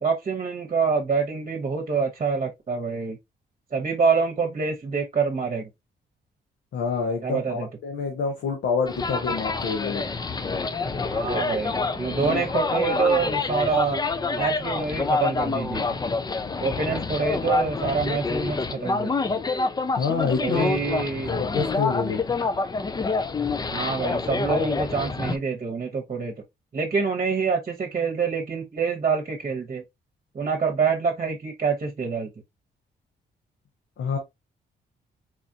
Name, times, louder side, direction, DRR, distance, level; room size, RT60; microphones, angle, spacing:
voice 1, 0.0-3.2 3.7-5.7 7.2-7.7 11.1-14.0 14.3-15.8 16.6-19.4 20.4-21.3 23.7-26.3 26.7-29.8 30.3-32.3, right 5 dB, 40° right, 1.0 m, -26 dB
voice 2, 6.7-10.1 20.0-20.7 21.0-22.2 34.0-34.2, left 5 dB, 80° left, 1.0 m, -27 dB
sound 1, 8.9-25.4, left 4 dB, 20° left, 0.5 m, -27 dB
4.1 x 2.5 x 2.7 m
cardioid pair, 85°, 19 cm